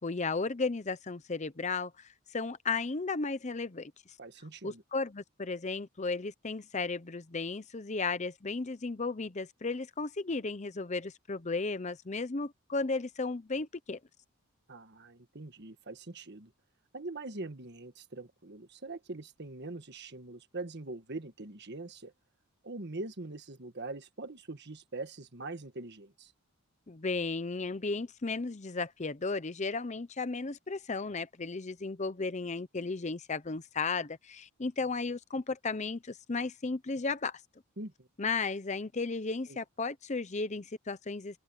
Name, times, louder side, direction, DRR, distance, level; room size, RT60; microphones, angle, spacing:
voice 1, 0.0-3.9 4.6-14.0 26.9-37.4 38.2-41.4, left 3 dB, 35° left, 0.7 m, -34 dB
voice 2, 4.2-4.8 14.7-16.5 16.9-22.1 22.6-26.3 37.8-38.1 39.5-39.6, right 2 dB, 50° right, 1.6 m, -43 dB
open air
head